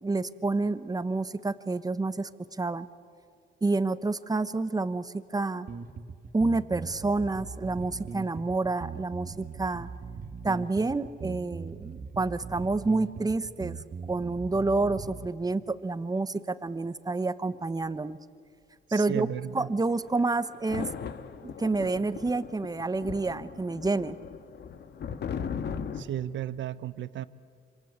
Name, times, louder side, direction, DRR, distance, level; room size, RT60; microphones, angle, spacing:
voice 1, 0.0-2.9 3.6-5.7 6.3-9.9 10.4-13.8 14.1-18.2 18.9-19.3 19.5-20.9 21.4-24.2, right 3 dB, 20° right, 13 dB, 1.1 m, -29 dB
sound 1, 5.7-15.3, right 5 dB, 45° right, 1.7 m, -40 dB
voice 2, 18.9-19.7 25.9-27.3, right 11 dB, 70° right, 16 dB, 0.9 m, -34 dB
sound 2, 19.9-26.0, left 7 dB, 60° left, 1.6 m, -38 dB
26.5 x 26.0 x 8.2 m, 2.2 s
cardioid pair, 90°, 20 cm